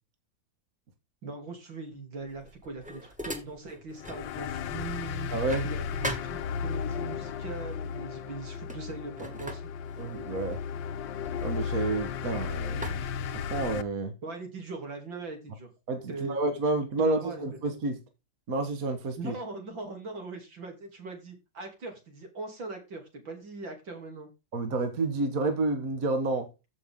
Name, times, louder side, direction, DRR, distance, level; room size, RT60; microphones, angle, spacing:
voice 1, 1.2-5.3 5.6-9.6 14.2-15.7 16.1-16.4 17.0-17.6 19.2-24.3, right 3 dB, 75° right, 3.8 m, -40 dB
sound 1, 2.3-4.3 4.7-7.0 7.8-8.1 8.4-12.3 12.8-14.0, equal, 5° right, 1.7 m, -41 dB
sound 2, 4.0-13.8, left 7 dB, 75° left, 1.5 m, -35 dB
voice 2, 5.3-5.7 10.0-10.6 11.4-13.0 13.3-14.1 15.9-18.0 18.5-19.3 24.5-26.5, right 2 dB, 50° right, 1.9 m, -29 dB
15.0 x 5.6 x 3.7 m
omnidirectional pair, 2.1 m